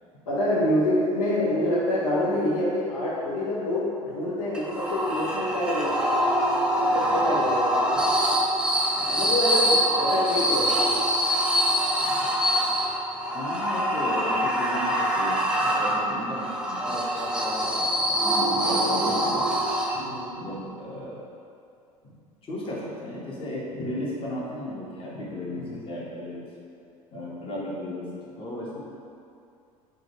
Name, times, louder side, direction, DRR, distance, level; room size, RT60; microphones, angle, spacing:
voice 1, 0.3-6.0 6.8-7.7 8.9-10.9 20.0-20.3 25.5-25.9 28.7-28.8, left 1 dB, 70° left, -7 dB, 0.9 m, -26 dB
sound 1, 4.5-20.3, equal, 5° right, 0.5 m, -24 dB
voice 2, 13.3-19.4 19.9-20.0 20.3-21.2 22.0-22.1 22.4-26.5 27.1-28.0 28.4-28.8, left 1 dB, 30° left, -6 dB, 1.0 m, -35 dB
3.8 x 2.4 x 4.2 m, 2.5 s
figure-of-eight pair, 70°, 18 cm